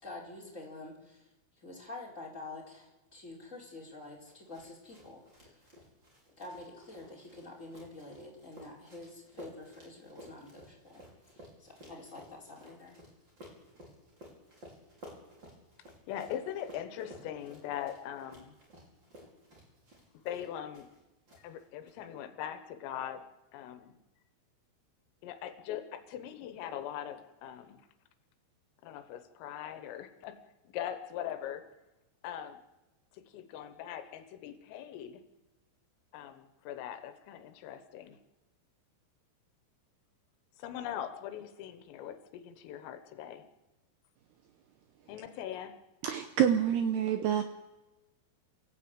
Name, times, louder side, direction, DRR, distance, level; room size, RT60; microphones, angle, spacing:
voice 1, 0.0-1.3 1.6-5.6 6.4-11.0 11.3-13.0, left 2 dB, 15° left, -2 dB, 4.3 m, -47 dB
sound 1, 4.2-21.0 21.3-21.9, equal, 20° right, 5.4 m, -55 dB
voice 2, 16.1-18.6 20.3-20.9 21.3-23.2 23.5-24.0 25.2-27.8 28.8-30.4 30.7-31.7 32.2-32.6 33.1-35.2 36.1-38.2 40.6-43.4 45.1-45.8, left 10 dB, 85° left, 10 dB, 3.9 m, -41 dB
voice 3, 46.0-47.4, right 9 dB, 80° right, 8 dB, 2.4 m, -27 dB
28.0 x 15.5 x 9.0 m, 1.1 s
omnidirectional pair, 5.8 m